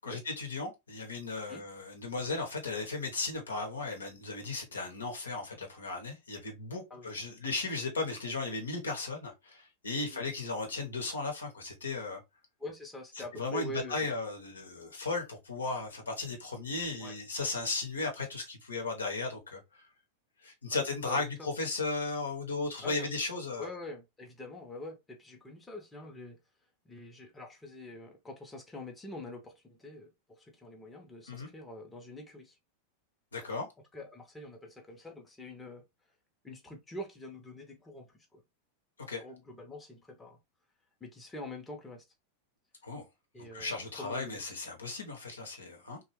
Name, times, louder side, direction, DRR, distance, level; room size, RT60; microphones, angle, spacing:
voice 1, 0.0-12.2 13.3-19.8 20.4-23.7 31.3-31.5 33.3-33.7 39.1-39.2 42.8-43.1 43.4-46.0, left 3 dB, 75° left, 0.9 m, -36 dB
voice 2, 12.6-14.2 17.0-17.2 20.7-21.2 22.8-23.1 23.6-26.4 26.8-32.6 33.4-33.6 33.9-35.8 36.4-38.4 39.2-40.4 41.0-42.0 43.3-44.4, left 2 dB, 10° left, 0.7 m, -45 dB
3.0 x 2.2 x 3.0 m
figure-of-eight pair, 90°, 0 cm